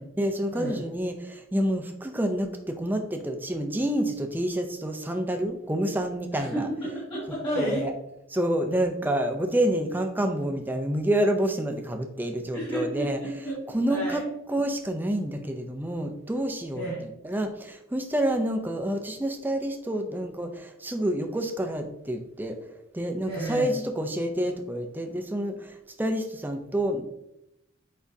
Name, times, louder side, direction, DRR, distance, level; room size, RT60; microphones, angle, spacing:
voice 1, 0.2-6.7 7.6-7.9 8.3-13.2 13.7-14.2 14.5-16.9 17.2-22.6 22.9-27.0, right 1 dB, 10° right, 5 dB, 0.5 m, -28 dB
voice 2, 6.3-7.9 12.5-14.2 16.8-17.0 23.3-23.7, right 1 dB, 25° left, -8 dB, 2.1 m, -32 dB
7.1 x 5.0 x 2.7 m, 0.87 s
head